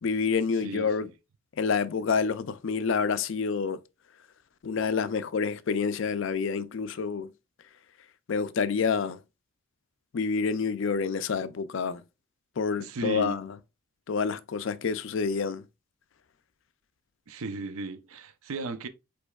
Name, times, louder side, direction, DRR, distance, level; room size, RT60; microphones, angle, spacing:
voice 1, 0.0-1.1 1.6-3.8 4.6-7.3 8.3-9.2 10.1-12.0 12.6-13.5 14.1-15.6, left 5 dB, 55° left, 0.4 m, -28 dB
voice 2, 0.6-1.1 12.8-13.4 17.3-18.9, right 3 dB, 70° right, 0.6 m, -35 dB
5.1 x 4.3 x 2.3 m
head